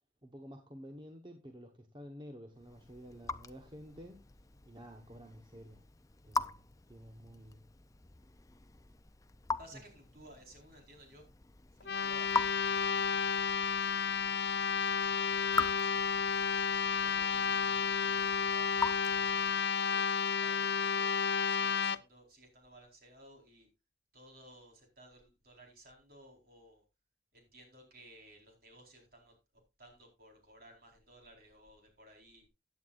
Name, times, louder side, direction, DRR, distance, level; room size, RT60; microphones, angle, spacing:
voice 1, 0.2-4.2 4.6-5.8 6.2-7.7 9.7-9.8, equal, 25° right, 1.2 m, -51 dB
Raindrop / Drip, 2.5-19.7, left 3 dB, 20° left, 0.5 m, -42 dB
voice 2, 9.6-11.2 11.8-13.2 13.6-14.5 15.1-16.2 16.8-19.3 19.9-23.7 24.1-26.8 27.3-29.3 29.8-32.5, right 1 dB, 55° right, 4.5 m, -58 dB
sound 1, 11.8-22.0, left 6 dB, 70° left, 0.6 m, -31 dB
16.0 x 9.4 x 2.5 m
head